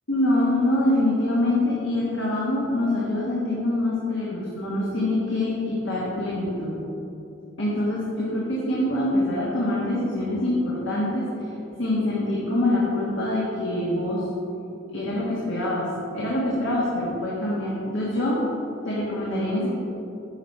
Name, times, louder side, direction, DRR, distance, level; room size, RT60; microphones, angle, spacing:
voice 1, 0.1-6.8 7.6-11.3 11.8-14.2 14.9-18.4 18.8-19.7, left 1 dB, 65° left, -6 dB, 1.5 m, -25 dB
10.5 x 6.3 x 4.2 m, 3.0 s
head